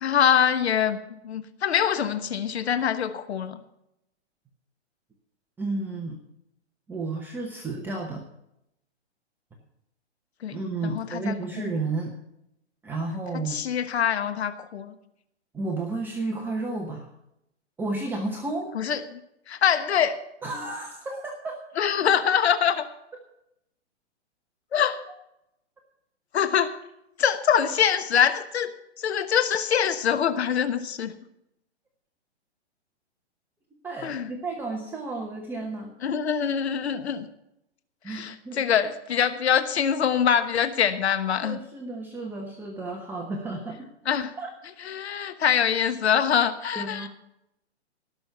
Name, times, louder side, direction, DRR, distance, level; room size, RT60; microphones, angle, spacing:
voice 1, 0.0-1.0 1.2-3.6 10.4-11.7 13.5-14.9 18.7-19.2 19.5-20.2 21.8-22.9 24.7-25.0 26.3-26.7 27.2-28.7 29.0-31.1 34.0-34.3 36.0-37.3 38.1-41.6 44.1-44.3 44.8-47.1, left 8 dB, 65° left, 10 dB, 1.2 m, -24 dB
voice 2, 5.6-6.2 6.9-8.2 10.5-12.2 12.8-13.6 15.5-17.1 17.8-18.7 20.4-21.6 33.8-35.9 38.0-38.7 41.4-43.9 44.4-44.5 46.7-47.1, right 3 dB, 5° right, -1 dB, 1.0 m, -32 dB
18.5 x 6.3 x 7.1 m, 0.81 s
hypercardioid pair, 150°, 34 cm